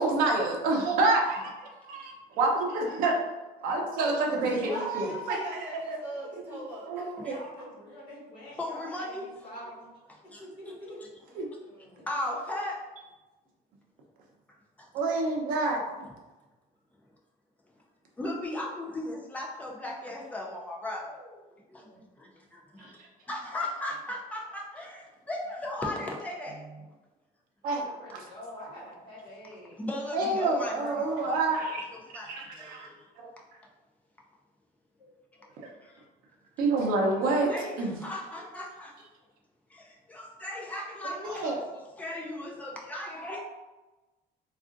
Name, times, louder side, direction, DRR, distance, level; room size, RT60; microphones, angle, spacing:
voice 1, 0.0-3.2 3.6-5.4 5.9-6.0 6.9-7.4 11.4-11.5 14.9-15.8 22.8-22.9 27.6-27.8 30.1-31.9 32.3-32.9 35.6-35.7 36.6-37.5 37.8-38.0 41.2-41.6, right 3 dB, 65° right, 0 dB, 0.6 m, -27 dB
voice 2, 4.3-7.1 11.3-12.1, right 1 dB, 10° right, -11 dB, 1.3 m, -41 dB
voice 3, 7.3-9.9 10.4-10.9 20.9-21.4 21.8-21.9 27.8-29.8 35.0-35.5 35.8-35.9 43.0-43.4, equal, 30° left, -8 dB, 1.3 m, -46 dB
voice 4, 8.6-9.3 10.3-10.5 12.0-12.9 14.5-14.9 16.0-16.1 18.2-21.1 21.7-22.9 23.3-26.6 29.8-31.5 31.9-33.0 35.8-36.1 37.2-39.0 39.7-43.4, left 1 dB, 10° left, -2 dB, 0.4 m, -37 dB
3.5 x 2.4 x 2.5 m, 1.1 s
cardioid pair, 180°, 16 cm